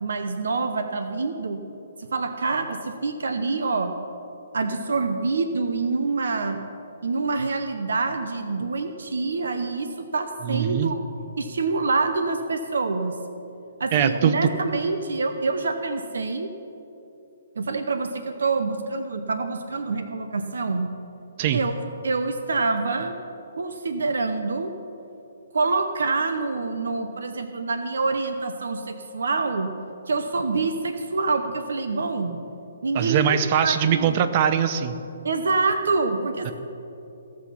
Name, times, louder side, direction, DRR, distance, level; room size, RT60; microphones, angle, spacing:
voice 1, 0.0-1.6 2.0-4.0 4.5-6.6 7.0-11.0 11.4-13.2 13.8-16.5 17.6-20.9 21.5-21.7 22.0-23.2 23.6-24.7 25.5-29.7 30.1-32.4 32.8-34.1 35.2-36.5, right 3 dB, 80° right, 8 dB, 0.8 m, -26 dB
voice 2, 10.4-10.9 13.9-14.4 21.4-21.6 32.9-34.9 36.5-36.6, right 9 dB, 35° right, 11 dB, 0.6 m, -22 dB
16.0 x 6.3 x 5.7 m, 2.9 s
hypercardioid pair, 155°, 0 cm